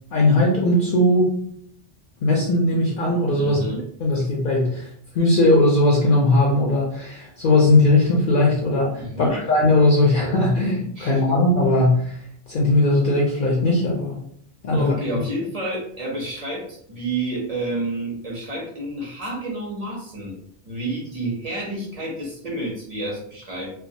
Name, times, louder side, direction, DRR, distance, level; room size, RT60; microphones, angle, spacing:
voice 1, 0.1-1.3 2.2-3.6 4.0-4.9 5.1-12.2 12.5-14.2 14.6-15.2, left 2 dB, 60° left, -3 dB, 0.6 m, -19 dB
voice 2, 3.4-3.8 9.0-9.4 11.0-11.4 14.7-20.4 20.7-23.7, right 1 dB, 40° right, -3 dB, 0.6 m, -29 dB
2.3 x 2.2 x 2.6 m, 0.67 s
omnidirectional pair, 1.2 m